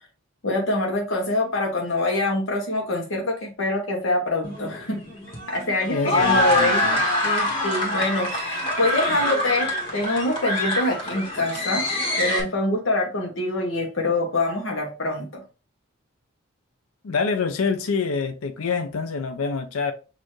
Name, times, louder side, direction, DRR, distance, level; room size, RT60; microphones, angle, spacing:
voice 1, 0.4-5.0 5.5-6.8 7.2-11.9 12.2-15.4, left 2 dB, 65° left, 1.0 m, -25 dB
sound 1, 4.4-12.4, left 1 dB, 25° left, 1.4 m, -25 dB
voice 2, 5.9-7.0 17.0-19.9, left 4 dB, 90° left, 0.6 m, -26 dB
6.5 x 2.6 x 3.1 m
head